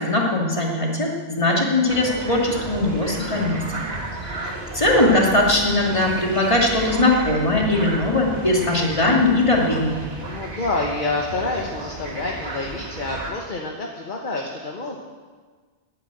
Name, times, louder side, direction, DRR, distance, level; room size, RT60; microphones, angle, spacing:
voice 1, 0.0-3.8 4.2-10.0, left 2 dB, 25° left, -1 dB, 2.4 m, -20 dB
sound 1, 1.9-13.3, right 2 dB, 60° right, 2.3 m, -33 dB
voice 2, 3.9-4.2 10.2-15.0, left 2 dB, 45° left, 0 dB, 1.4 m, -28 dB
11.5 x 9.4 x 9.0 m, 1.5 s
omnidirectional pair, 1.2 m